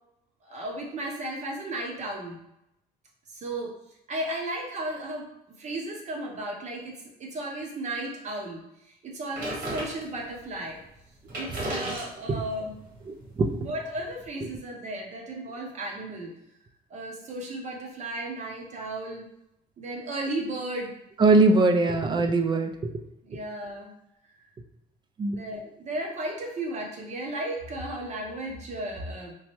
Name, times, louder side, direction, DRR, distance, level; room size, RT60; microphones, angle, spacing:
voice 1, 0.4-2.4 3.3-3.7 4.1-5.3 5.6-8.6 9.0-10.8 11.3-12.8 13.6-16.3 16.9-19.2 19.8-20.9 23.2-23.9 25.3-29.3, right 1 dB, 45° right, 0 dB, 0.7 m, -34 dB
sound 1, 9.3-10.4 11.0-11.1 11.2-14.3, right 1 dB, 65° right, 1.3 m, -36 dB
voice 2, 13.1-13.7 21.2-22.7 25.2-25.4, right 3 dB, 25° right, 6 dB, 0.4 m, -21 dB
3.0 x 2.2 x 3.0 m, 0.82 s
cardioid pair, 110°, 17 cm